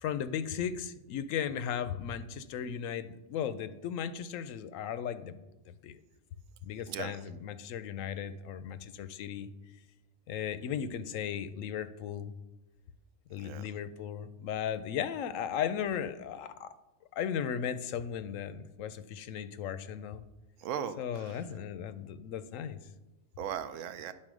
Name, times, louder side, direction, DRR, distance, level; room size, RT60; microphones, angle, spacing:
voice 1, 0.0-5.3 5.7-6.0 6.6-9.5 10.3-12.3 13.3-16.7 17.1-20.2 21.0-22.8, left 8 dB, 85° left, 1.0 m, -36 dB
voice 2, 20.6-21.4 23.4-24.1, right 9 dB, 80° right, 0.9 m, -38 dB
9.8 x 4.2 x 6.1 m
omnidirectional pair, 1.3 m